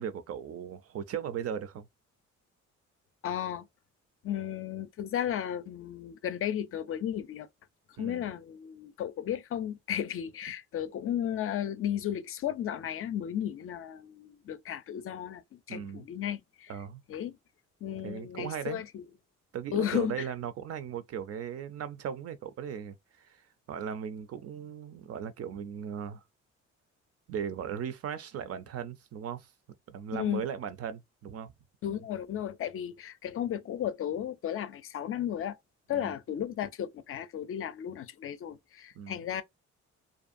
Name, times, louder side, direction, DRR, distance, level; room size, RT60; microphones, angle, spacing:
voice 1, 0.0-1.9 8.0-8.3 15.7-16.1 16.7-17.0 18.0-18.8 19.5-26.2 27.3-29.5 29.9-31.5 31.8-32.0 35.9-36.1 38.9-39.2, right 8 dB, 55° right, 0.5 m, -38 dB
voice 2, 3.2-3.6 4.2-7.5 8.0-15.4 15.7-16.7 17.1-17.3 17.8-19.0 19.7-20.1 30.1-30.4 31.8-35.6 35.9-39.4, left 10 dB, 45° left, 0.4 m, -34 dB
2.6 x 2.2 x 2.5 m
cardioid pair, 90°, 30 cm